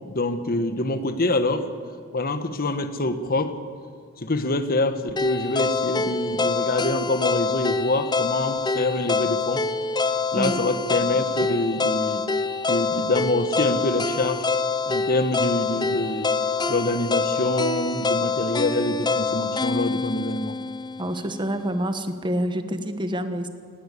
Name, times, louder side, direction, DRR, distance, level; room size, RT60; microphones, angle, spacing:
voice 1, 0.1-1.6 2.1-3.5 4.2-9.6 10.3-12.2 12.7-14.5 14.9-16.3 16.7-20.6, left 2 dB, 45° left, 9 dB, 1.3 m, -25 dB
sound 1, 5.2-21.3, left 4 dB, 20° left, 0.8 m, -26 dB
voice 2, 21.0-23.5, equal, 20° right, 8 dB, 1.3 m, -27 dB
18.5 x 18.0 x 8.4 m, 2.1 s
head